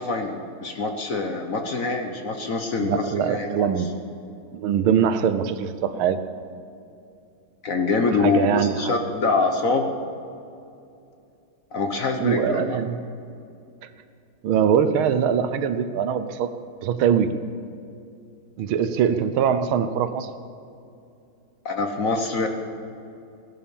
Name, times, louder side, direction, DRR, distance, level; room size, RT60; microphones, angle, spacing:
voice 1, 0.0-3.7 7.6-9.9 11.7-12.8 21.6-22.5, left 3 dB, 50° left, 5 dB, 1.2 m, -24 dB
voice 2, 2.8-3.9 4.5-6.2 8.2-8.9 12.2-13.0 14.4-16.5 16.8-17.3 18.6-20.3, right 8 dB, 80° right, 11 dB, 1.6 m, -22 dB
16.5 x 11.5 x 7.1 m, 2.6 s
omnidirectional pair, 2.3 m